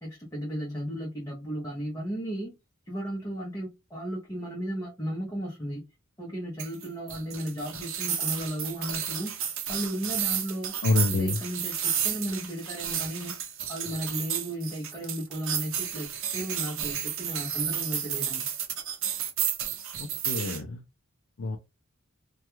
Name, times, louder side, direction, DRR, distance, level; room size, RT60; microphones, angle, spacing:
voice 1, 0.0-2.6 2.9-5.8 6.2-9.3 9.7-10.7 11.1-13.3 13.7-18.5, equal, 15° left, 0.7 m, -35 dB
sound 1, 6.6-20.6, right 8 dB, 65° right, 0.6 m, -32 dB
voice 2, 10.8-11.4 20.0-20.8 21.4-21.6, left 3 dB, 55° left, 0.4 m, -27 dB
2.2 x 2.2 x 2.9 m
head